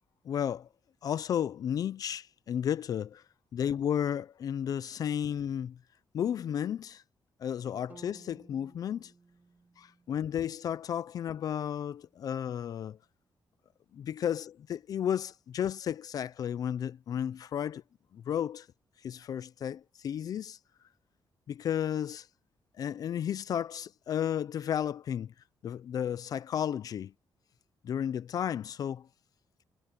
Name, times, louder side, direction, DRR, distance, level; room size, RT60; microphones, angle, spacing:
voice 1, 0.3-0.7 1.0-3.2 3.5-5.8 6.1-7.0 7.4-9.1 9.8-13.0 14.0-17.8 18.1-18.7 19.0-20.6 21.5-22.3 22.8-25.3 25.6-27.1 27.8-29.1, left 9 dB, 50° left, 0.4 m, -33 dB
sound 1, 7.9-12.0, right 4 dB, 20° right, 2.8 m, -58 dB
wide cardioid pair, 170°, 8 cm